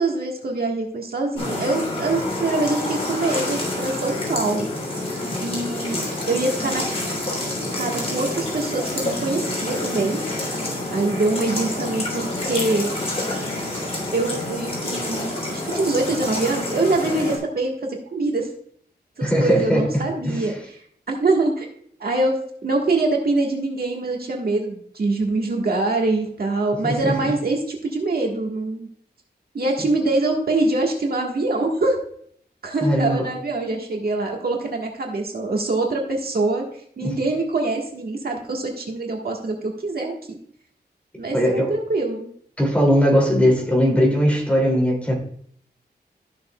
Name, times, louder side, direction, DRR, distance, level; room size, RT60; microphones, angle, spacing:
voice 1, 0.0-4.7 5.4-6.8 7.7-10.2 10.9-13.0 14.1-18.5 19.2-20.8 21.1-21.7 22.0-22.4 22.6-28.9 29.5-32.0 32.6-36.6 37.0-40.4 41.2-42.3, right 2 dB, 65° right, 0 dB, 1.5 m, -24 dB
sound 1, 1.4-17.4, left 1 dB, 35° left, 3.4 m, -28 dB
voice 2, 19.2-20.4 26.8-27.2 32.8-33.3 37.0-37.1 41.3-41.7 42.6-45.2, equal, 5° left, -1 dB, 2.7 m, -19 dB
13.5 x 6.4 x 2.3 m, 0.63 s
wide cardioid pair, 110°, 17 cm